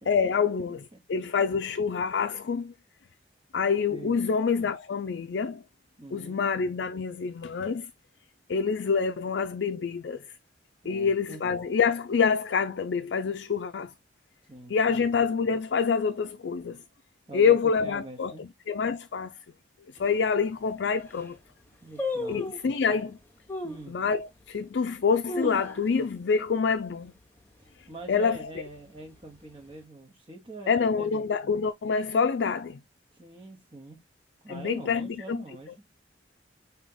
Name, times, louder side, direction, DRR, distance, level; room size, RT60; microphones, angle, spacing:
voice 1, 0.1-0.8 1.1-2.7 3.5-5.6 6.1-7.9 8.5-10.3 10.9-13.9 14.7-16.8 17.3-19.3 20.0-21.4 22.3-23.2 23.9-27.1 28.1-28.4 30.7-32.8 34.5-35.4, left 5 dB, 75° left, 0.4 m, -26 dB
voice 2, 3.9-4.2 6.0-6.4 10.8-11.4 14.5-15.0 17.3-18.4 21.8-22.5 23.6-24.0 27.6-31.5 33.1-34.0 34.4-35.8, right 2 dB, 30° right, 0.9 m, -44 dB
sound 1, 20.0-20.1 20.7-20.8 21.0-21.4 22.0-22.7 23.5-23.9 24.4-24.5 25.0-26.2 26.5-26.6 26.9-27.3 27.7-28.0 28.7-29.4 29.7-29.8, left 2 dB, 10° left, 0.8 m, -34 dB
4.9 x 2.8 x 3.7 m
head